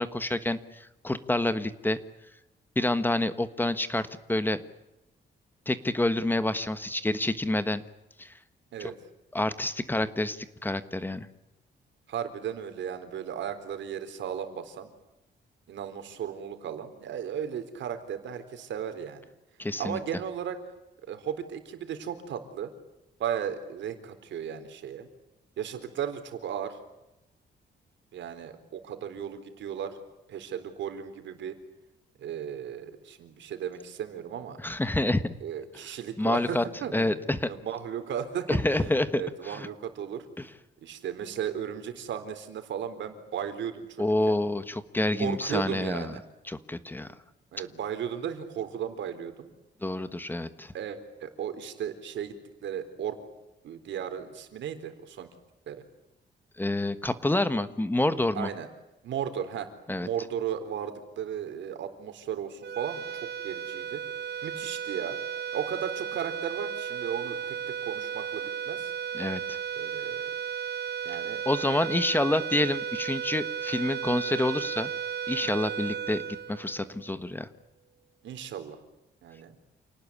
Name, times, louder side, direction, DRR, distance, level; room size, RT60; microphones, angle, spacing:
voice 1, 0.0-2.0 2.7-4.6 5.7-7.8 8.2-8.3 8.8-8.9 9.3-11.3 19.6-20.0 34.6-35.3 36.2-36.6 36.9-37.5 38.5-39.7 40.4-40.5 44.0-46.2 46.5-47.1 49.8-50.7 56.6-58.5 59.9-60.1 69.1-69.6 71.4-74.9 75.3-76.2 76.5-77.5, left 1 dB, 10° left, 12 dB, 1.4 m, -28 dB
voice 2, 12.1-14.9 15.7-19.2 19.8-20.6 21.1-22.7 23.2-25.1 25.6-26.8 28.1-30.0 30.3-31.6 32.2-34.6 35.4-37.2 37.5-40.3 40.8-44.4 45.2-46.2 47.1-47.2 47.5-49.5 50.7-52.4 52.6-53.2 53.6-55.3 55.7-55.8 58.3-58.7 59.0-59.7 60.0-64.0 64.4-65.2 65.5-67.6 67.8-68.9 69.8-70.3 71.0-71.4 78.2-78.8 79.2-79.5, right 8 dB, 90° right, 8 dB, 4.0 m, -35 dB
sound 1, 62.6-77.2, right 8 dB, 65° right, 1.0 m, -35 dB
28.5 x 19.0 x 9.9 m, 0.94 s
wide cardioid pair, 155°, 19 cm